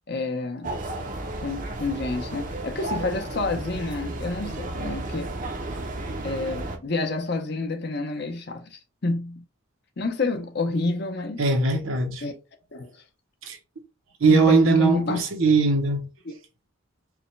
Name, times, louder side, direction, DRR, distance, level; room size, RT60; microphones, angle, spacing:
voice 1, 0.1-0.8 1.4-5.3 6.2-9.4 10.0-11.4 12.2-12.3 12.7-12.9 14.3-15.3, left 3 dB, 50° left, 0.7 m, -29 dB
sound 1, 0.6-6.8, right 2 dB, 40° right, 0.6 m, -33 dB
voice 2, 11.4-12.2 13.4-13.6 14.2-16.1, right 4 dB, 80° right, 0.9 m, -20 dB
4.7 x 2.2 x 3.1 m
head